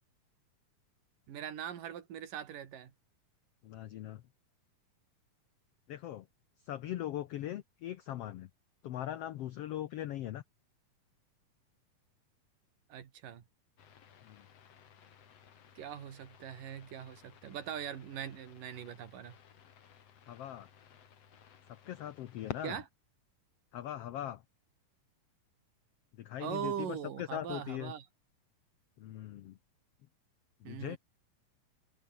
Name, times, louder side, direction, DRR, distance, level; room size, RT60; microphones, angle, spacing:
voice 1, 1.3-2.9 12.9-13.4 15.8-19.4 22.6-22.9 26.4-28.1 30.6-31.0, right 9 dB, 75° right, 3.9 m, -41 dB
voice 2, 3.6-4.2 5.9-6.3 6.6-8.5 8.8-10.4 14.2-14.5 20.3-20.7 21.9-22.8 23.7-24.4 26.2-27.9 29.0-29.6 30.6-31.0, left 12 dB, 90° left, 1.3 m, -40 dB
sound 1, 13.8-22.8, left 8 dB, 50° left, 2.8 m, -53 dB
open air
omnidirectional pair, 3.9 m